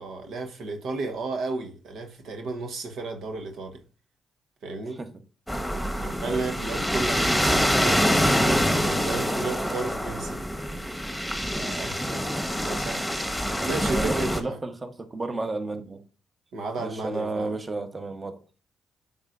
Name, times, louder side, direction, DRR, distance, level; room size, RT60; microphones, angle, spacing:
voice 1, 0.0-3.8 4.6-5.0 5.9-10.4 11.5-12.2 12.7-13.0 13.4-14.6 16.5-17.5, right 3 dB, 75° right, 1.1 m, -33 dB
sound 1, 5.5-14.4, equal, 5° right, 1.4 m, -25 dB
voice 2, 6.2-6.5 13.8-16.0 16.8-18.4, right 2 dB, 30° right, 1.1 m, -32 dB
8.8 x 5.4 x 2.5 m
supercardioid pair, 60°, 0 cm